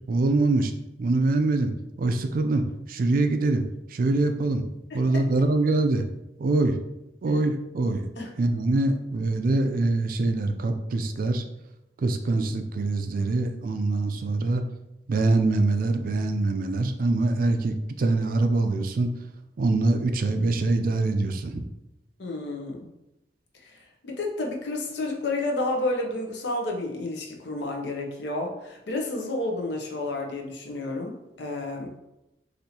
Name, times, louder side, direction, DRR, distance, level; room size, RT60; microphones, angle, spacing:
voice 1, 0.1-0.7 1.0-1.7 2.0-3.6 3.9-4.6 4.9-6.0 6.4-6.8 7.2-8.1 8.4-11.4 12.0-14.6 15.1-19.1 19.6-21.7, right 2 dB, 55° right, 7 dB, 0.4 m, -24 dB
voice 2, 4.9-5.2 8.2-8.3 22.2-22.9 23.6-23.8 24.0-32.0, left 2 dB, 75° left, 1 dB, 0.7 m, -31 dB
4.2 x 2.7 x 2.7 m, 0.90 s
head